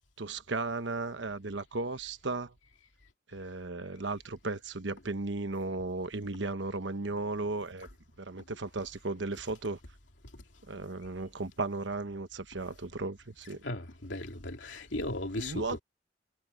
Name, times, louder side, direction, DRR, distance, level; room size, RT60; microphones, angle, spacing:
voice 1, 0.2-2.5 3.3-7.9 8.2-9.8 10.7-13.6 15.4-15.8, right 3 dB, 70° right, 1.1 m, -35 dB
voice 2, 13.6-15.8, left 1 dB, 75° left, 2.8 m, -36 dB
head